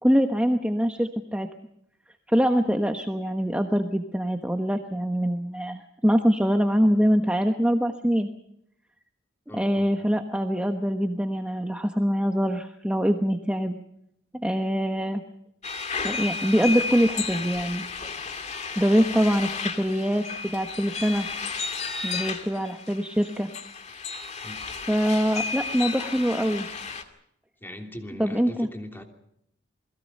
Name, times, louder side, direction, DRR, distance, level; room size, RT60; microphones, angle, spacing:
voice 1, 0.0-1.5 2.3-8.3 9.6-13.8 14.3-15.2 15.9-17.8 18.8-20.3 20.5-21.3 22.0-23.5 24.9-26.7 28.2-28.7, equal, 5° right, 5 dB, 1.2 m, -24 dB
voice 2, 9.5-9.9 24.4-24.6 27.6-29.0, equal, 10° left, 4 dB, 3.0 m, -40 dB
sound 1, 15.6-27.0, left 5 dB, 40° left, 2.2 m, -33 dB
29.0 x 21.0 x 5.4 m, 0.75 s
head